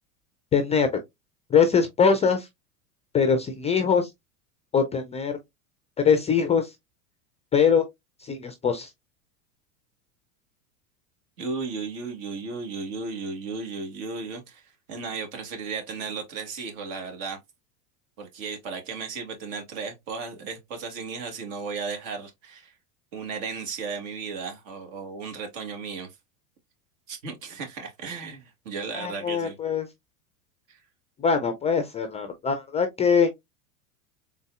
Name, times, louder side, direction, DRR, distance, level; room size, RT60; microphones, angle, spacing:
voice 1, 0.5-1.0 1.5-2.5 3.1-4.1 4.7-5.4 6.0-6.7 7.5-7.8 8.2-8.9 28.9-29.9 31.2-33.3, left 6 dB, 15° left, 0.4 m, -22 dB
voice 2, 11.4-14.6 14.9-17.4 18.2-22.7 23.1-26.1 27.1-29.6 30.7-30.8, right 4 dB, 60° right, 1.8 m, -35 dB
3.9 x 3.6 x 2.4 m
hypercardioid pair, 90°, 43 cm